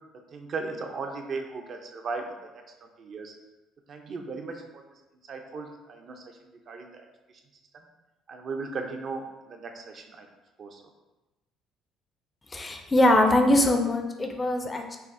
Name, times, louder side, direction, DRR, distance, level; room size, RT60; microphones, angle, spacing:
voice 1, 0.3-2.3 3.0-3.3 3.9-4.6 5.3-6.2 6.7-7.1 8.3-9.2 9.5-10.3 10.6-10.8, right 4 dB, 45° right, 3 dB, 0.4 m, -36 dB
voice 2, 12.5-15.0, left 1 dB, 20° left, 4 dB, 0.4 m, -22 dB
5.5 x 2.0 x 2.5 m, 1.1 s
cardioid pair, 110°, 0 cm